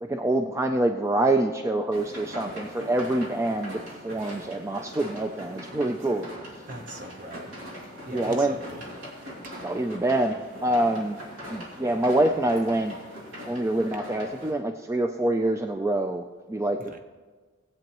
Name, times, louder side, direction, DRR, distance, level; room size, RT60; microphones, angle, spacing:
voice 1, 0.0-6.3 8.1-8.6 9.6-11.2 11.5-12.9 13.5-16.2 16.5-17.0, right 1 dB, 15° right, 6 dB, 0.4 m, -26 dB
sound 1, 1.9-14.5, equal, 70° right, 2.7 m, -41 dB
voice 2, 6.7-7.5 8.0-8.9 16.8-17.0, right 1 dB, 40° right, 5 dB, 1.0 m, -41 dB
19.5 x 8.2 x 3.0 m, 1.4 s
head